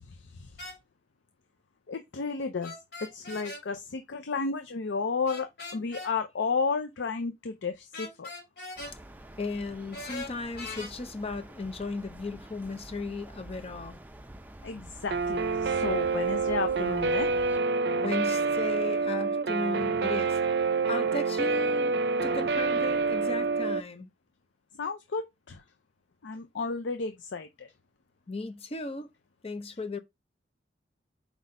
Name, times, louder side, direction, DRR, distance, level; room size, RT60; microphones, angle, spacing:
sound 1, 0.6-0.8 2.6-3.6 5.3-6.1 7.9-8.9 9.9-10.9, left 2 dB, 65° left, 2.8 m, -40 dB
voice 1, 1.9-2.7 3.0-8.3 14.6-17.3 24.8-25.6 26.2-27.7, left 4 dB, 90° left, 0.5 m, -32 dB
sound 2, 8.8-17.6, right 1 dB, 10° right, 0.5 m, -47 dB
voice 2, 9.4-14.0 17.9-24.1 28.3-29.1 29.4-30.0, left 3 dB, 35° left, 0.6 m, -36 dB
Guitar, 15.1-23.8, right 4 dB, 60° right, 0.5 m, -27 dB
4.7 x 4.1 x 5.2 m
head